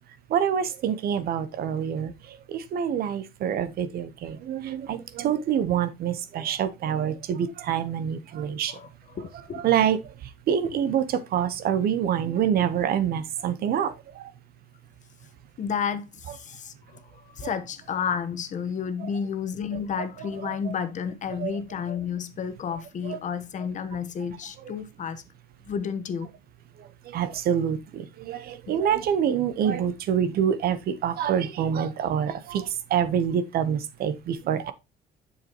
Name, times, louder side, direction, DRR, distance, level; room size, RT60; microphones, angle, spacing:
voice 1, 0.3-8.8 9.5-10.0 10.5-14.3 17.4-17.5 19.0-19.1 20.4-20.7 21.4-21.6 23.0-23.2 24.6-24.7 26.8-34.7, right 8 dB, 65° right, 0.9 m, -26 dB
voice 2, 9.1-9.7 10.6-10.8 15.6-25.2 25.7-26.3, left 7 dB, 45° left, 1.1 m, -31 dB
7.7 x 6.7 x 2.9 m
cardioid pair, 110°, 17 cm